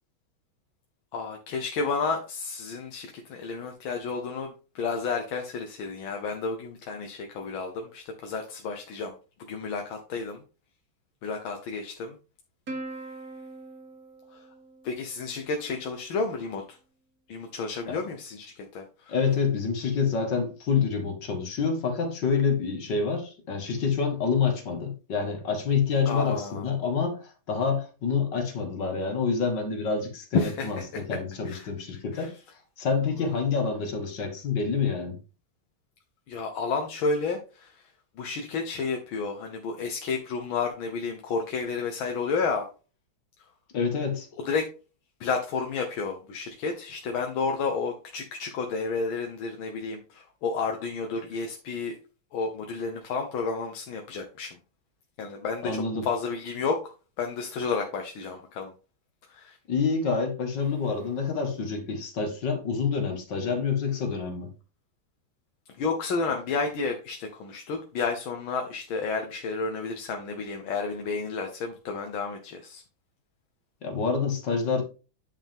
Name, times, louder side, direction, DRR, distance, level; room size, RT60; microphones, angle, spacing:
voice 1, 1.1-4.5 4.8-9.1 9.5-10.4 11.2-12.2 14.3-14.4 14.8-16.8 17.3-19.1 26.1-26.6 30.3-31.0 31.5-31.7 32.1-32.3 36.3-37.7 38.2-42.6 44.5-44.7 45.2-52.0 52.3-54.6 55.2-56.8 57.2-58.7 59.3-59.6 65.8-72.8, left 4 dB, 85° left, 1.9 m, -31 dB
Plucked string instrument, 12.7-15.4, right 2 dB, 45° right, 2.3 m, -41 dB
voice 2, 19.1-32.3 32.8-35.2 43.7-44.3 55.6-56.1 59.7-64.5 73.8-74.8, left 5 dB, 60° left, 2.3 m, -27 dB
9.8 x 5.6 x 3.6 m
omnidirectional pair, 2.1 m